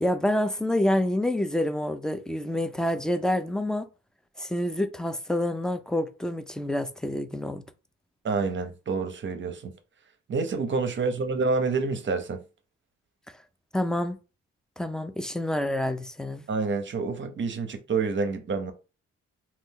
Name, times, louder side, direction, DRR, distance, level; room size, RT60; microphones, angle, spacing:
voice 1, 0.0-3.9 4.4-7.6 13.7-14.2 14.8-16.4, left 1 dB, ahead, 0.4 m, -27 dB
voice 2, 8.2-9.7 10.3-12.4 16.5-18.7, right 4 dB, 40° right, 0.7 m, -28 dB
2.6 x 2.4 x 3.6 m
cardioid pair, 90°, 30 cm